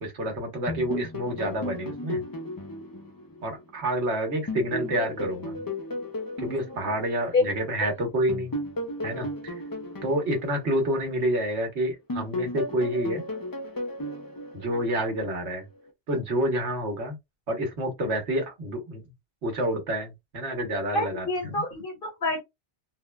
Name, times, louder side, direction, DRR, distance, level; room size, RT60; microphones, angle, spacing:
voice 1, 0.0-2.2 3.4-5.6 6.4-8.6 9.0-9.6 10.0-13.2 14.5-15.7 16.1-17.2 17.5-19.0 19.4-21.6, right 1 dB, 80° right, 1.4 m, -28 dB
sound 1, 0.7-4.0 4.5-7.7 8.3-11.6 12.1-15.3, left 1 dB, 30° left, 0.4 m, -35 dB
voice 2, 20.9-22.4, left 3 dB, 55° left, 1.2 m, -27 dB
3.6 x 2.1 x 2.2 m
omnidirectional pair, 1.2 m